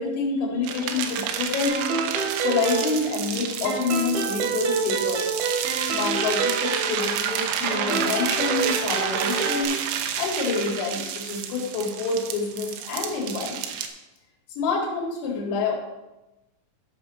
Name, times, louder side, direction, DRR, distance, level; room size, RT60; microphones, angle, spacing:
voice 1, 0.0-1.8 2.4-5.2 5.8-9.8 10.2-13.6 14.6-15.8, left 4 dB, 80° left, -1 dB, 4.5 m, -27 dB
sound 1, 0.6-13.9, right 8 dB, 90° right, 3.4 m, -30 dB
sound 2, 1.7-3.3 3.7-7.3 7.7-9.7, right 5 dB, 70° right, 2.5 m, -28 dB
13.5 x 6.0 x 4.2 m, 1.0 s
omnidirectional pair, 5.8 m